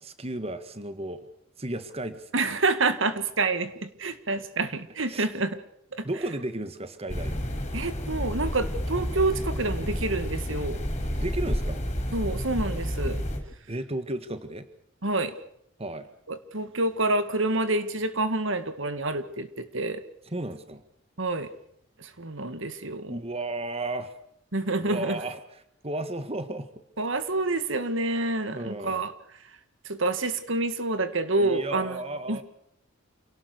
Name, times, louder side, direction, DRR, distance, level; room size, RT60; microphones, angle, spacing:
voice 1, 0.0-1.3 1.6-2.5 5.1-5.3 6.0-7.5 7.7-7.9 11.2-11.8 13.7-14.7 15.8-16.1 20.3-20.8 23.1-24.1 24.8-26.7 28.5-29.0 31.4-32.4, right 2 dB, 30° right, 10 dB, 1.7 m, -34 dB
voice 2, 2.3-5.6 6.0-6.1 7.7-10.8 12.1-13.2 15.0-15.3 16.3-20.0 21.2-21.5 22.0-23.2 24.5-25.2 27.0-29.1 29.9-32.4, right 2 dB, 65° right, 11 dB, 2.0 m, -28 dB
sound 1, 7.1-13.4, equal, 35° left, 6.6 m, -30 dB
28.0 x 18.5 x 6.8 m, 0.74 s
head